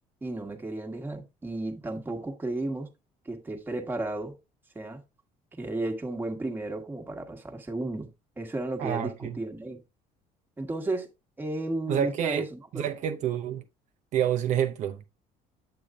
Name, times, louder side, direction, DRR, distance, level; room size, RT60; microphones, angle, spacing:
voice 1, 0.2-2.9 3.2-4.4 4.7-5.0 5.5-8.1 8.4-9.8 10.6-11.1 11.4-12.9, right 2 dB, 15° right, 1.3 m, -33 dB
voice 2, 8.8-9.4 11.9-12.5 12.7-13.6 14.1-15.1, right 9 dB, 55° right, 0.6 m, -28 dB
8.5 x 7.9 x 2.4 m
cardioid pair, 145°, 15 cm